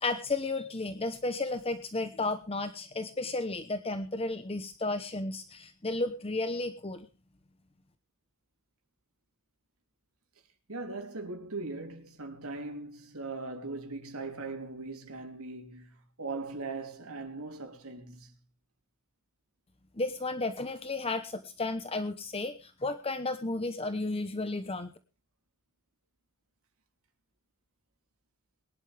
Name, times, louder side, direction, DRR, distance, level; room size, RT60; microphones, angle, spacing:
voice 1, 0.0-7.1 20.0-24.9, left 2 dB, 25° left, 1.0 m, -33 dB
voice 2, 10.7-15.9 16.2-18.3, right 3 dB, 80° right, 3.4 m, -39 dB
22.5 x 11.5 x 3.5 m
head